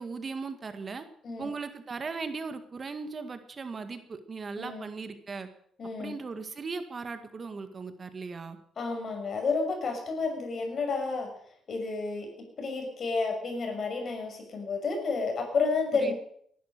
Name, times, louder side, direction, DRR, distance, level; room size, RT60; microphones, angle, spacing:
voice 1, 0.0-1.1 1.4-5.5 6.0-8.6 15.9-16.1, right 4 dB, 40° right, 9 dB, 1.8 m, -38 dB
voice 2, 5.8-6.1 8.8-11.3 11.7-12.3 12.6-16.1, left 4 dB, 50° left, 3 dB, 6.4 m, -30 dB
18.5 x 11.5 x 6.6 m, 0.65 s
cardioid pair, 90°, 0 cm